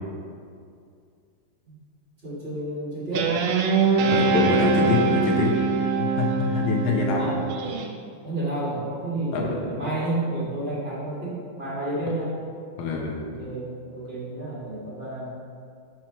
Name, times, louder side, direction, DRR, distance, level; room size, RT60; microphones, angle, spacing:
voice 1, 2.2-3.4 4.7-5.0 7.2-7.8 8.2-12.3 13.2-15.3, right 1 dB, 30° right, -9 dB, 1.5 m, -30 dB
Guitar, 3.1-7.9, right 5 dB, 85° right, 1.5 m, -23 dB
voice 2, 4.1-5.5 6.0-7.4 9.3-9.5 12.8-13.2, left 4 dB, 80° left, -1 dB, 1.7 m, -24 dB
4.7 x 4.6 x 5.9 m, 2.3 s
omnidirectional pair, 2.4 m